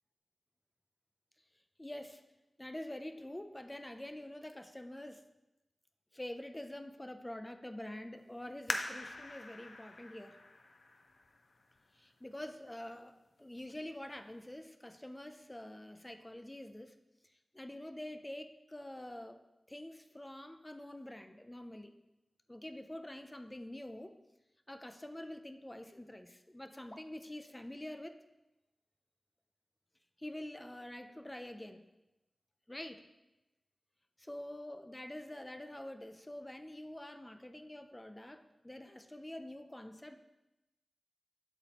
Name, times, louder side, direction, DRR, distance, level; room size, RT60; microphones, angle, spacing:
voice 1, 1.8-2.2 2.6-5.2 6.1-10.4 11.9-17.0 17.5-19.4 19.7-21.9 22.5-24.2 24.7-28.2 30.2-31.9 32.7-33.1 34.2-40.2, left 1 dB, 15° left, 7 dB, 0.4 m, -46 dB
sound 1, 8.7-12.0 12.6-12.7 13.4-13.8 14.1-14.2, left 2 dB, 65° left, 0.7 m, -43 dB
7.9 x 7.5 x 2.9 m, 0.99 s
wide cardioid pair, 115°, 0 cm